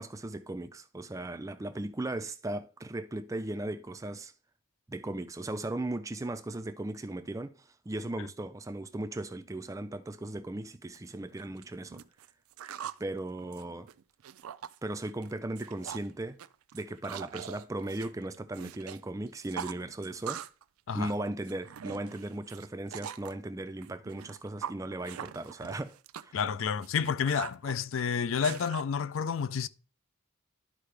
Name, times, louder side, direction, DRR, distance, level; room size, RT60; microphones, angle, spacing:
voice 1, 0.0-4.3 4.9-7.5 7.9-12.0 13.0-13.9 14.8-16.4 16.7-20.4 20.9-25.9 26.2-26.4, right 2 dB, 15° right, 0.4 m, -37 dB
sound 1, 10.9-11.0 11.4-13.0 13.4-14.8 15.1-15.3 15.6-16.1 16.4-19.0 19.3-20.6 20.9-23.3 23.8-28.8, right 9 dB, 85° right, 0.4 m, -42 dB
voice 2, 26.3-29.7, left 6 dB, 70° left, 0.4 m, -30 dB
12.0 x 4.7 x 3.3 m
head